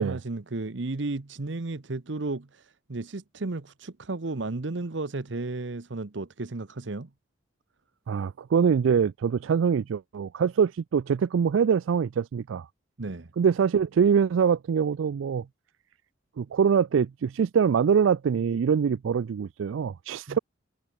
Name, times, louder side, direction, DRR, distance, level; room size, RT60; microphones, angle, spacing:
voice 1, 0.0-7.1 13.0-13.3 20.3-20.4, right 2 dB, 70° right, 1.0 m, -33 dB
voice 2, 8.1-12.7 13.4-15.5 16.4-20.4, right 6 dB, 85° right, 0.4 m, -24 dB
head